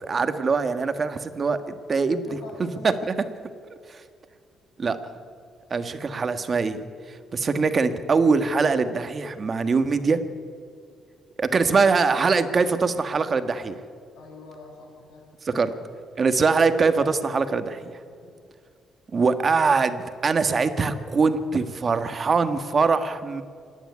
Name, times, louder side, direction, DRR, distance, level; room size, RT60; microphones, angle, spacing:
voice 1, 0.0-1.6 1.9-2.2 2.8-3.1 3.9-4.0 4.8-5.0 5.7-6.8 7.1-10.2 11.4-13.8 15.5-15.7 16.2-17.9 19.1-23.4, right 4 dB, 40° right, 9 dB, 1.5 m, -22 dB
voice 2, 2.1-3.0 14.1-15.7 18.1-18.4, left 3 dB, 80° left, -3 dB, 6.7 m, -46 dB
26.5 x 10.0 x 9.7 m, 2.3 s
cardioid pair, 90°, 0 cm